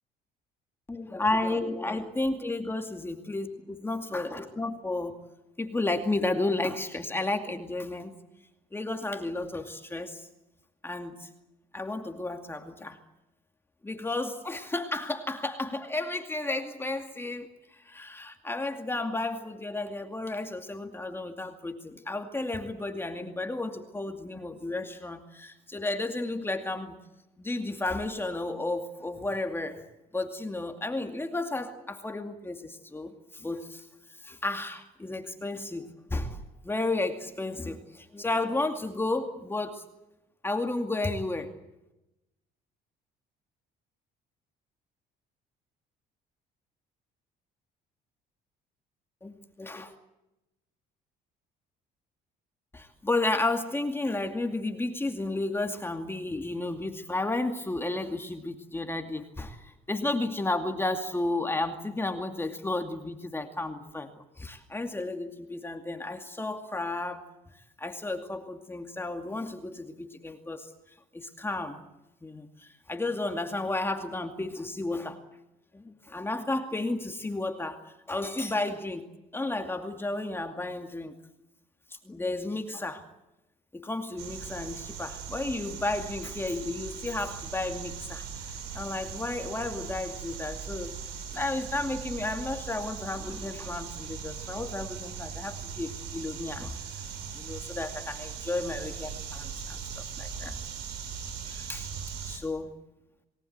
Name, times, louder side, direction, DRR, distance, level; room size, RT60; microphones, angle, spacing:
voice 1, 0.9-5.2 5.6-8.1 8.7-10.3 10.8-11.3 11.7-13.0 13.8-17.5 17.8-27.0 27.4-29.8 30.1-33.8 34.2-39.9 40.4-41.5 49.2-49.9 52.7-67.2 67.8-70.7 71.1-71.8 72.2-75.2 75.7-77.8 78.1-81.1 82.0-83.0 83.7-88.2 88.7-90.9 91.3-96.7 97.3-100.6 101.5-101.9 102.2-102.7, left 2 dB, 15° left, 5 dB, 2.4 m, -32 dB
sound 1, 84.2-102.4, right 6 dB, 85° right, 5.4 m, -39 dB
28.0 x 19.5 x 8.1 m, 0.94 s
cardioid pair, 110°, 17 cm